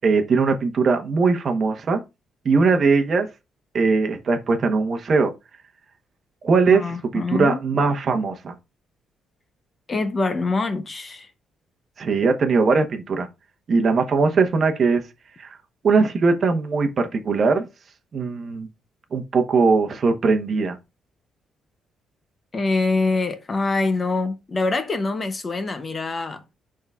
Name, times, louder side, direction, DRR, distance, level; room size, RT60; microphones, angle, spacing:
voice 1, 0.0-2.0 2.4-3.3 3.7-5.3 6.4-8.5 12.0-13.3 13.7-15.0 15.4-15.6 15.8-17.7 18.1-18.7 19.1-20.8, right 4 dB, 40° right, 1.0 m, -20 dB
voice 2, 6.7-7.6 9.9-11.3 22.5-26.4, left 3 dB, 25° left, 0.7 m, -24 dB
11.0 x 3.7 x 2.4 m
cardioid pair, 150°, 0 cm